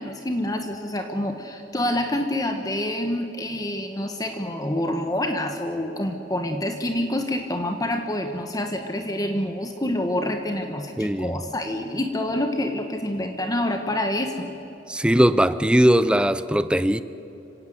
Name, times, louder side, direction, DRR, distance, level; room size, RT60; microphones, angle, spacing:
voice 1, 0.0-14.5, left 1 dB, 20° left, 5 dB, 1.2 m, -27 dB
voice 2, 11.0-11.4 14.9-17.0, equal, 5° right, 14 dB, 0.6 m, -19 dB
26.0 x 17.0 x 7.9 m, 3.0 s
head